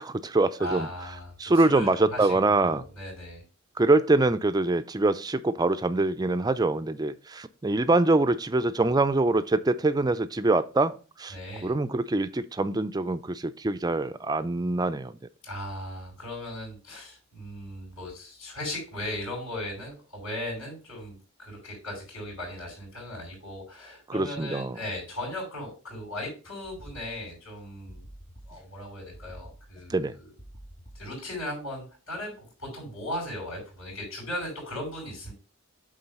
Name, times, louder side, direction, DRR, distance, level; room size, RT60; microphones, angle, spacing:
voice 1, 0.0-0.9 1.4-2.8 3.8-11.3 11.6-15.1 24.1-24.8 29.9-30.1, right 2 dB, 20° right, 0.4 m, -24 dB
voice 2, 0.6-3.4 11.3-11.7 15.4-28.0 28.5-30.1 30.9-35.3, left 1 dB, 75° left, 5.1 m, -37 dB
sound 1, 26.6-27.6 27.9-28.9 29.1-30.1 30.4-31.4, right 1 dB, 35° left, 3.2 m, -48 dB
8.8 x 3.8 x 5.3 m
head